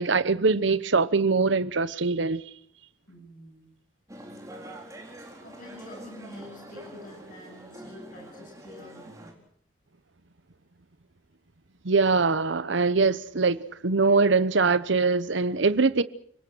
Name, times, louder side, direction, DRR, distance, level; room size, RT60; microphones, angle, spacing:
voice 1, 0.0-2.4 11.8-13.6 13.8-16.0, right 4 dB, 70° right, 0.9 m, -22 dB
voice 2, 3.1-3.7 4.5-9.1, left 2 dB, 45° left, 6.9 m, -48 dB
sound 1, 4.1-9.3, right 1 dB, 15° right, 4.1 m, -45 dB
29.5 x 19.0 x 6.3 m
head